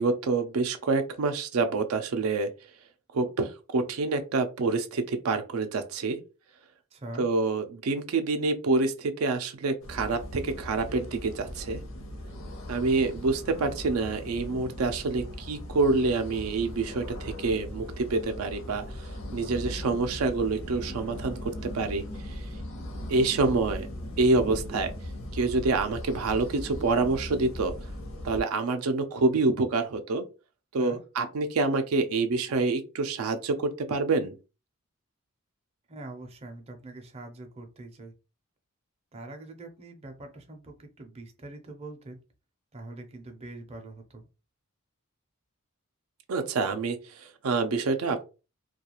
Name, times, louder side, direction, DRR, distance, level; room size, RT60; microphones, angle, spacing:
voice 1, 0.0-2.5 3.1-6.2 7.2-11.8 12.7-22.0 23.1-23.9 24.2-24.9 25.3-27.7 28.2-30.2 30.7-34.3 46.3-48.2, right 3 dB, 85° right, 7 dB, 0.4 m, -27 dB
voice 2, 6.9-7.3 30.8-31.0 35.9-38.1 39.1-42.2 42.7-44.3, right 2 dB, 30° right, 3 dB, 0.5 m, -43 dB
sound 1, 9.8-28.4, left 1 dB, 70° left, 0.6 m, -39 dB
2.3 x 2.3 x 2.9 m, 0.31 s
head